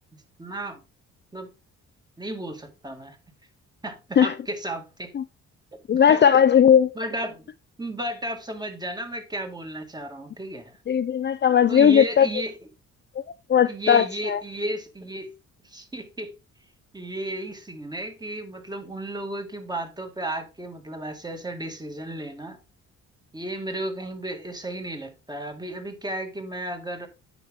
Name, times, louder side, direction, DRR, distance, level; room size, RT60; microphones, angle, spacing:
voice 1, 0.1-0.8 1.3-1.5 2.2-3.2 3.8-5.1 5.7-6.2 7.0-7.5 7.8-10.7 11.7-12.6 13.7-15.3 15.6-16.3 16.9-22.6 23.3-27.1, right 1 dB, 15° right, 1.9 m, -33 dB
voice 2, 5.9-6.9 10.9-12.3 13.5-14.4, left 8 dB, 35° left, 0.5 m, -18 dB
9.1 x 5.9 x 3.5 m
cardioid pair, 90°, 30 cm